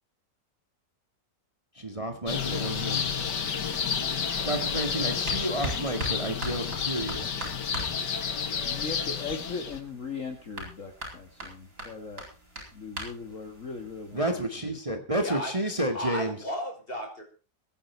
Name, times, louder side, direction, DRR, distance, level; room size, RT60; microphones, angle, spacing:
voice 1, 1.8-3.1 4.5-7.3 14.1-16.4, right 1 dB, 20° right, 5 dB, 2.0 m, -30 dB
sound 1, 2.3-9.8, left 7 dB, 80° left, 2.2 m, -30 dB
sound 2, 4.4-14.2, right 1 dB, 55° right, 8.4 m, -41 dB
voice 2, 8.7-12.2 12.7-14.4, left 4 dB, 45° left, 5 dB, 2.1 m, -38 dB
voice 3, 15.2-15.5 15.9-17.2, left 1 dB, 30° left, 3 dB, 5.6 m, -34 dB
22.5 x 10.0 x 4.5 m, 0.34 s
omnidirectional pair, 1.9 m